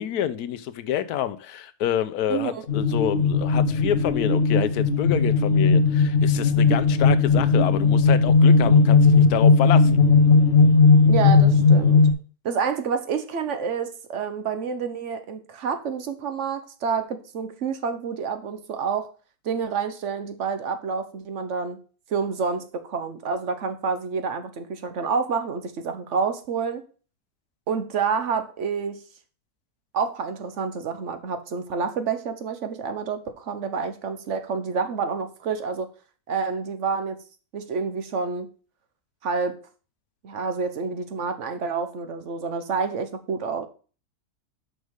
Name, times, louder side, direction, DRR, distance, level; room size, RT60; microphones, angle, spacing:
voice 1, 0.0-10.0, left 10 dB, 85° left, 1.2 m, -28 dB
voice 2, 2.3-2.6 11.1-12.0 12.4-19.1 19.4-21.8 22.1-26.8 27.7-29.0 29.9-35.9 36.3-37.2 37.5-38.5 39.2-39.6 40.2-43.7, right 5 dB, 55° right, 1.2 m, -28 dB
sound 1, 2.7-12.1, left 4 dB, 50° left, 1.3 m, -17 dB
6.5 x 5.3 x 4.8 m
omnidirectional pair, 1.6 m